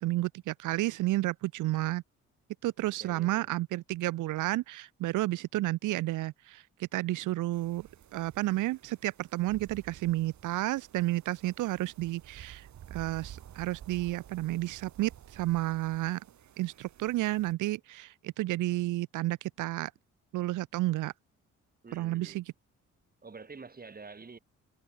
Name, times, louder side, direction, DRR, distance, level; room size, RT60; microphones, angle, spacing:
voice 1, 0.0-2.0 2.6-16.2 16.6-19.9 20.3-21.1 21.9-22.4, right 17 dB, 90° right, 1.2 m, -31 dB
voice 2, 3.0-3.5 21.8-22.5 23.2-24.4, right 4 dB, 30° right, 7.8 m, -48 dB
sound 1, 7.5-17.5, right 10 dB, 65° right, 7.3 m, -52 dB
cardioid pair, 90°, 30 cm